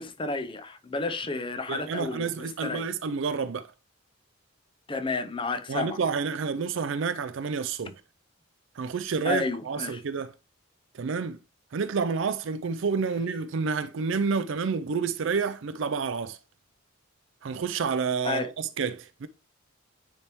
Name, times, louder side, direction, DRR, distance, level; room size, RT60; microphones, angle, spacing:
voice 1, 0.0-2.9 4.9-6.0 9.2-10.0 18.2-18.5, left 3 dB, 25° left, 0.5 m, -31 dB
voice 2, 1.7-3.7 5.7-8.0 8.8-10.3 10.9-11.4 11.7-16.4 17.4-19.3, right 5 dB, 65° right, 0.4 m, -29 dB
9.7 x 3.4 x 3.0 m
head